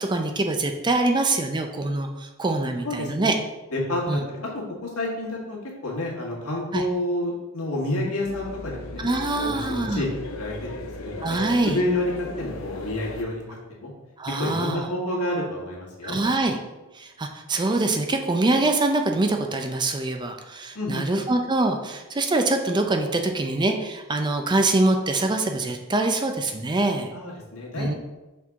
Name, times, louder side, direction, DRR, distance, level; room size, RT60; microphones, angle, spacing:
voice 1, 0.0-3.3 4.1-4.2 6.7-6.8 9.0-10.0 11.2-11.8 14.2-14.9 16.0-16.6 16.9-27.1 27.8-27.9, right 2 dB, 20° right, 5 dB, 0.4 m, -24 dB
voice 2, 2.8-3.4 3.7-5.6 5.8-9.0 9.4-11.4 11.6-12.1 12.4-13.4 13.8-13.9 14.4-16.2 20.7-21.1 27.1-27.9, left 1 dB, 85° left, -3 dB, 1.7 m, -29 dB
sound 1, 8.2-13.2, left 2 dB, 65° left, 0.5 m, -36 dB
5.9 x 4.5 x 3.6 m, 1.1 s
head